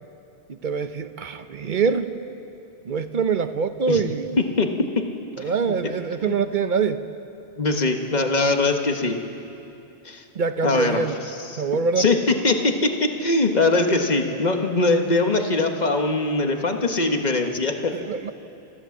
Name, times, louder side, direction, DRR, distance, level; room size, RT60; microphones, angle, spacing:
voice 1, 0.5-2.1 2.8-4.4 5.4-7.0 10.3-11.2 11.6-12.1 17.9-18.3, right 5 dB, 50° right, 10 dB, 0.9 m, -24 dB
voice 2, 7.6-9.2 10.0-10.2 10.6-11.0 11.5-11.6 12.0-12.2 12.4-12.6 13.0-17.9, left 3 dB, 40° left, 4 dB, 1.5 m, -21 dB
28.0 x 14.5 x 7.2 m, 2.8 s
omnidirectional pair, 1.1 m